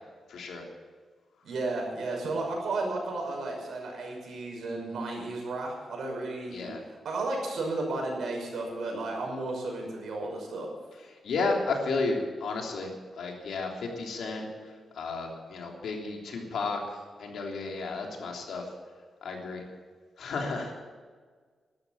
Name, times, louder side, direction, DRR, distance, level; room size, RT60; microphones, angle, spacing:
voice 1, 0.3-0.6 6.5-6.8 11.2-14.5 14.9-18.7 19.2-19.6 20.2-20.7, left 3 dB, 85° left, 1 dB, 3.3 m, -32 dB
voice 2, 1.4-10.7, right 2 dB, 80° right, 0 dB, 5.8 m, -33 dB
13.0 x 12.5 x 7.3 m, 1.5 s
cardioid pair, 105°, 0 cm